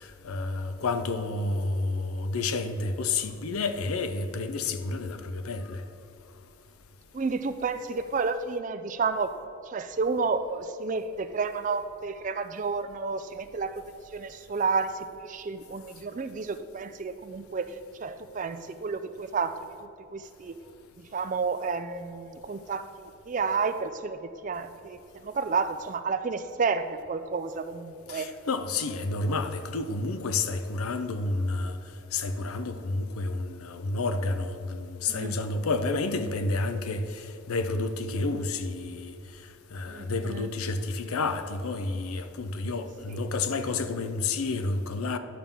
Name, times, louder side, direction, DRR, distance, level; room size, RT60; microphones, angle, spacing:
voice 1, 0.0-5.8 28.1-31.8 32.1-39.1 39.7-45.2, left 3 dB, 85° left, 0.6 m, -30 dB
voice 2, 7.1-9.3 9.6-20.6 21.0-28.3 35.1-35.4 39.9-40.5 43.1-43.2, right 4 dB, 35° right, 0.3 m, -31 dB
10.0 x 3.7 x 7.0 m
head